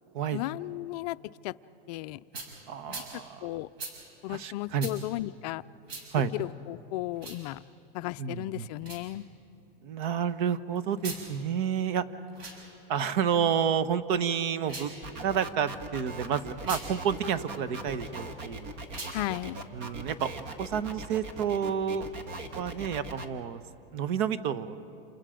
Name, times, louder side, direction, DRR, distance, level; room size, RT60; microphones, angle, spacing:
voice 1, 0.3-1.2 1.4-1.5 1.9-2.2 2.9-3.0 3.4-3.7 4.2-5.6 6.3-7.6 7.9-9.3 19.1-19.6, left 17 dB, 45° left, 14 dB, 0.5 m, -35 dB
sound 1, 2.3-2.5 2.9-3.1 3.8-3.9 4.8-5.0 5.9-6.1 7.1-7.4 8.8-9.0 10.9-11.2 12.3-12.6 14.6-15.0 16.6-16.9 18.9-19.2, right 3 dB, 90° right, 6.6 m, -40 dB
voice 2, 2.7-3.5 4.3-4.9 6.1-6.3 8.2-8.7 9.8-12.0 12.9-14.9 15.2-18.7 19.7-20.3 20.6-22.0 22.5-23.6 23.9-24.8, right 8 dB, 55° right, 12 dB, 1.1 m, -30 dB
sound 2, 15.0-23.3, right 2 dB, 35° right, 1.7 m, -40 dB
29.0 x 28.5 x 5.1 m, 2.9 s
supercardioid pair, 145°, 30 cm